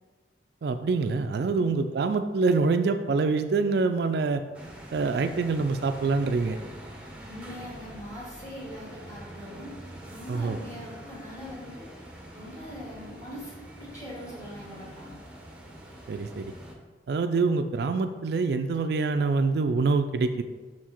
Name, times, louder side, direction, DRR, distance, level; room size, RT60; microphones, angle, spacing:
voice 1, 0.6-4.4 4.9-6.6 10.3-10.6 16.1-16.5 17.1-20.4, right 4 dB, 60° right, 8 dB, 0.3 m, -25 dB
sound 1, 4.5-16.7, right 1 dB, 5° right, 0.9 m, -45 dB
voice 2, 7.3-9.7 10.1-11.9 12.3-15.2, equal, 15° left, -6 dB, 2.0 m, -42 dB
5.9 x 4.7 x 4.3 m, 1.4 s
head